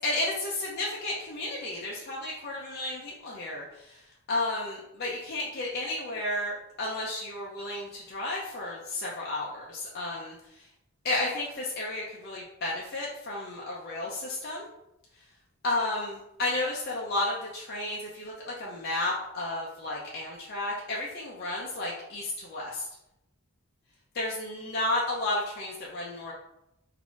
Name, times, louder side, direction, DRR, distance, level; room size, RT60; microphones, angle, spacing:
voice 1, 0.0-4.0 4.3-10.3 11.0-14.7 15.6-22.9 24.1-26.3, left 2 dB, 45° left, -5 dB, 0.7 m, -32 dB
4.1 x 2.8 x 4.7 m, 0.86 s
head